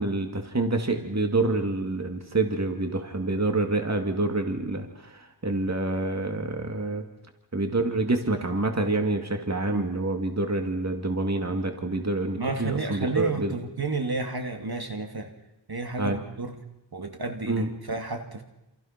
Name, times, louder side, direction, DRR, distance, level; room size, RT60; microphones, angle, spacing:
voice 1, 0.0-7.0 7.5-13.5 16.0-16.2 17.5-17.7, right 2 dB, 35° right, 5 dB, 2.5 m, -27 dB
voice 2, 12.4-15.3 15.7-16.6 16.9-18.4, right 3 dB, 55° right, 5 dB, 2.8 m, -31 dB
28.5 x 27.5 x 6.0 m, 0.93 s
wide cardioid pair, 60°, 45 cm